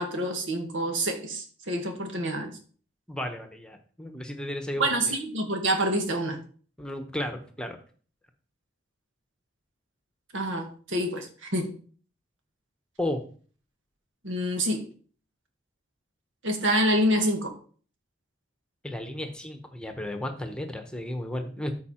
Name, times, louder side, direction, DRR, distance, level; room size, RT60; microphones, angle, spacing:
voice 1, 0.0-2.5 4.8-6.4 10.3-11.7 14.2-14.9 16.4-17.5, right 1 dB, 85° right, 1.9 m, -27 dB
voice 2, 3.1-5.1 6.8-7.8 13.0-13.2 18.8-21.7, left 1 dB, 5° left, 1.0 m, -34 dB
13.5 x 4.8 x 4.4 m
head